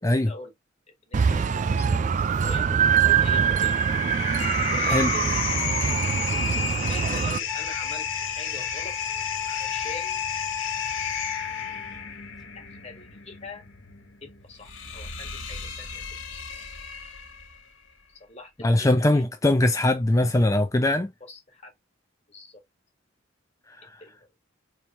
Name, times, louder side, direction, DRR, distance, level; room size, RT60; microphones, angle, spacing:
voice 1, 0.0-0.5 1.0-2.7 3.0-3.8 4.6-5.4 6.7-9.0 9.4-10.2 12.5-13.7 14.2-16.0 16.3-16.4 18.1-19.2 21.2-21.7 22.3-22.6 24.0-24.2, left 2 dB, 30° left, 1.6 m, -43 dB
sound 1, 1.1-7.4, right 7 dB, 35° right, 0.3 m, -23 dB
sound 2, 3.0-17.6, left 6 dB, 65° left, 1.6 m, -33 dB
Wind instrument woodwind instrument, 6.8-6.9 7.5-12.1, left 10 dB, ahead, 1.1 m, -36 dB
voice 2, 18.6-21.1 23.7-23.8, left 1 dB, 15° left, 0.5 m, -21 dB
4.4 x 3.6 x 2.5 m
head